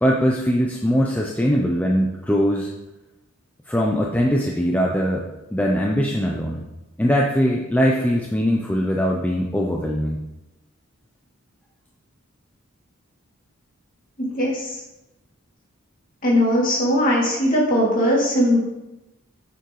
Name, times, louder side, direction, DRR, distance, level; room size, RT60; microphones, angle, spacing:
voice 1, 0.0-2.7 3.7-6.7 7.0-10.2, equal, 5° left, -1 dB, 0.5 m, -21 dB
voice 2, 14.2-14.8 16.2-18.6, equal, 40° left, -5 dB, 2.6 m, -19 dB
9.0 x 7.0 x 3.2 m, 0.95 s
head